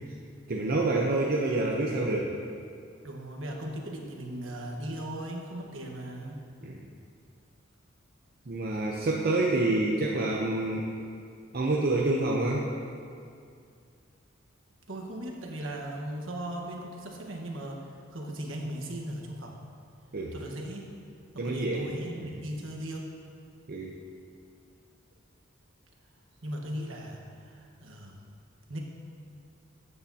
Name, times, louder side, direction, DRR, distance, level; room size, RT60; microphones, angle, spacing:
voice 1, 0.5-2.3 6.6-6.7 8.5-10.9 11.5-12.6 20.1-20.3 21.4-21.9 22.2-22.3 23.7-24.0, right 2 dB, 50° right, -2 dB, 0.7 m, -27 dB
voice 2, 3.0-6.4 14.9-17.8 18.1-19.6 20.3-20.8 21.3-23.1 26.4-28.2 28.7-28.8, right 1 dB, 75° right, 0 dB, 1.4 m, -38 dB
13.5 x 8.7 x 2.8 m, 2.4 s
head